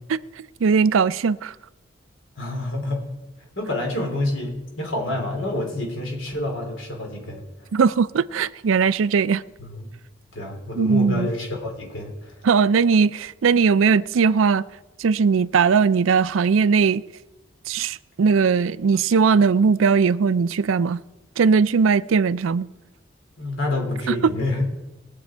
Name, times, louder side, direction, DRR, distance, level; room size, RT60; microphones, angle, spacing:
voice 1, 0.6-1.5 7.7-9.4 10.8-11.3 12.4-14.6 15.0-17.0 17.7-21.0 21.4-22.7 24.1-24.2, right 5 dB, 90° right, 0.4 m, -19 dB
voice 2, 2.4-3.0 3.6-7.4 9.6-9.9 10.3-12.3 23.4-24.6, left 1 dB, 80° left, 3.4 m, -28 dB
21.0 x 7.6 x 4.5 m
head